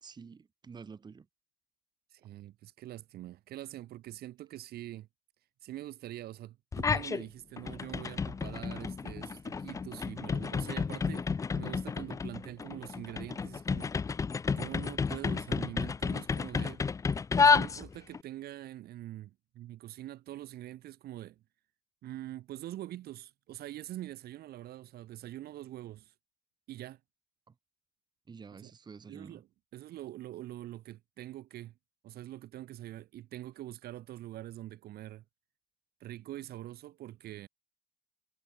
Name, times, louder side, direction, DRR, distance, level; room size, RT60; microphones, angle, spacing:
voice 1, 0.0-1.3 28.3-29.4, right 5 dB, 25° right, 0.9 m, -49 dB
voice 2, 2.1-5.1 5.6-13.9 14.5-16.8 17.4-21.4 22.0-26.1 26.7-27.0 28.6-28.7 29.1-29.5 29.7-31.7 32.0-35.2 36.0-37.5, right 14 dB, 70° right, 1.7 m, -44 dB
sound 1, 6.7-7.2 7.6-18.2, left 5 dB, 20° left, 0.4 m, -31 dB
cardioid pair, 110°, 17 cm